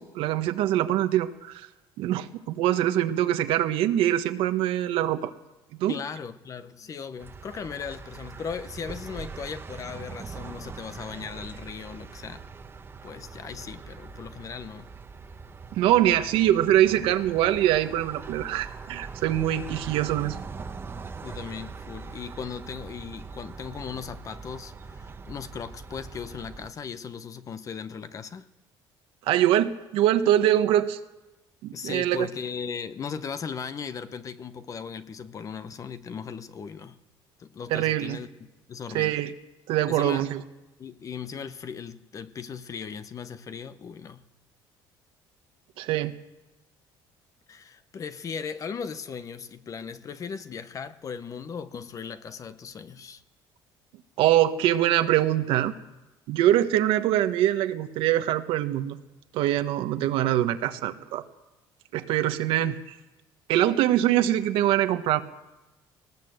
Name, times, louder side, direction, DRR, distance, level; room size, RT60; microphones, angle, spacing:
voice 1, 0.0-1.7 2.0-5.3 5.7-5.9 15.7-20.4 29.2-31.0 31.6-32.3 37.7-38.2 38.9-39.3 39.7-40.4 45.8-46.1 54.2-55.7 56.3-59.0 59.3-61.2 61.9-62.8 63.5-65.2, right 12 dB, 80° right, 1.3 m, -23 dB
voice 2, 5.9-12.4 13.0-14.9 21.2-28.5 31.7-37.0 37.4-39.2 39.9-40.3 40.8-44.2 47.5-53.2, left 6 dB, 35° left, 1.0 m, -37 dB
sound 1, 7.2-26.7, right 5 dB, 25° right, 1.1 m, -42 dB
19.0 x 18.5 x 8.0 m
cardioid pair, 120°, 9 cm